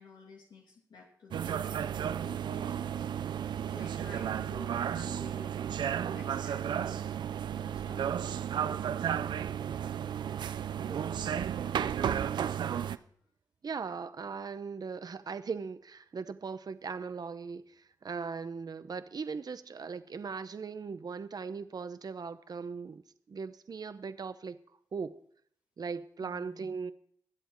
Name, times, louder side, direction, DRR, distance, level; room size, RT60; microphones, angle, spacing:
voice 1, 0.0-2.8 3.6-5.5 6.0-7.1 7.5-8.1 26.2-26.7, left 4 dB, 85° left, 2.7 m, -52 dB
sound 1, 1.3-13.0, right 9 dB, 90° right, 0.5 m, -33 dB
voice 2, 10.8-11.4 13.6-23.0 23.3-24.6 24.9-25.2 25.8-26.9, right 5 dB, 60° right, 0.8 m, -39 dB
22.5 x 8.0 x 4.5 m
cardioid pair, 50°, 7 cm